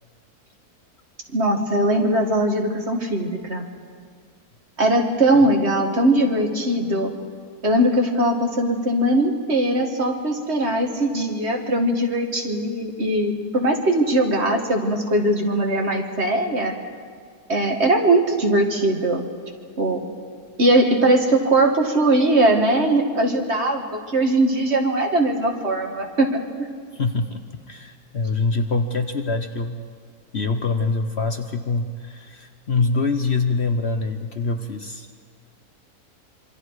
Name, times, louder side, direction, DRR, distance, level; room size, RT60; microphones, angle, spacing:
voice 1, 1.3-3.7 4.8-7.1 7.6-16.7 17.5-19.3 19.8-20.1 20.6-26.3, right 1 dB, 45° right, 2 dB, 2.3 m, -20 dB
voice 2, 26.9-27.4 27.7-29.8 30.3-35.1, left 3 dB, 50° left, 7 dB, 1.1 m, -24 dB
27.0 x 24.0 x 4.9 m, 2.1 s
omnidirectional pair, 1.6 m